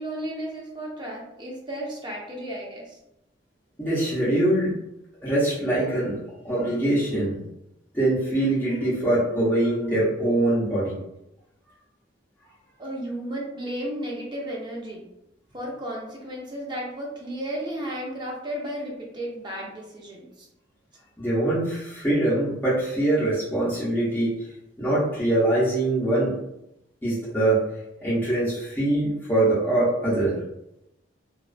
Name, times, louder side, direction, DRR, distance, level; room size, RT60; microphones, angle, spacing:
voice 1, 0.0-3.0 12.8-15.1 15.5-20.5, right 1 dB, 25° right, -2 dB, 0.6 m, -34 dB
voice 2, 3.8-4.8 5.2-6.2 6.4-7.4 7.9-10.9 21.2-24.4 24.8-26.4 27.0-27.6 28.0-30.4, right 1 dB, 10° left, -9 dB, 0.7 m, -23 dB
2.3 x 2.3 x 2.4 m, 0.85 s
head